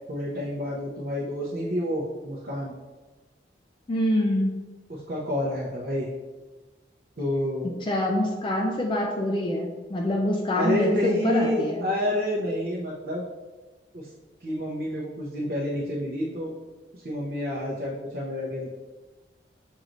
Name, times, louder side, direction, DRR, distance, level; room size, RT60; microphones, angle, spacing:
voice 1, 0.1-2.7 4.9-6.1 7.2-7.8 10.5-13.2 13.9-14.1 14.4-16.5 16.9-18.7, left 1 dB, 55° right, -5 dB, 0.7 m, -29 dB
voice 2, 3.9-4.5 7.9-11.9, left 1 dB, 25° left, 0 dB, 0.4 m, -25 dB
6.4 x 3.1 x 2.5 m, 1.2 s
head